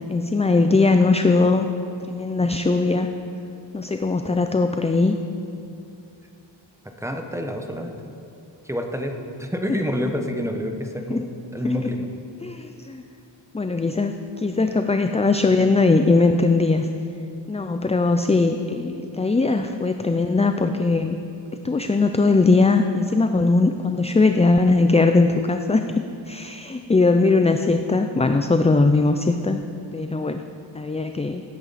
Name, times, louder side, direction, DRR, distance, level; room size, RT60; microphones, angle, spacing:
voice 1, 0.1-1.7 2.1-3.1 3.7-5.2 9.7-9.8 11.1-11.3 11.6-11.7 12.4-13.0 13.5-16.9 17.5-21.2 21.6-25.8 26.3-29.6 29.9-30.4 30.7-31.4, left 3 dB, 15° left, 7 dB, 0.4 m, -20 dB
voice 2, 7.0-7.9 8.6-12.1, equal, 5° right, 4 dB, 1.1 m, -28 dB
17.0 x 8.8 x 4.2 m, 2.6 s
cardioid pair, 65°, 46 cm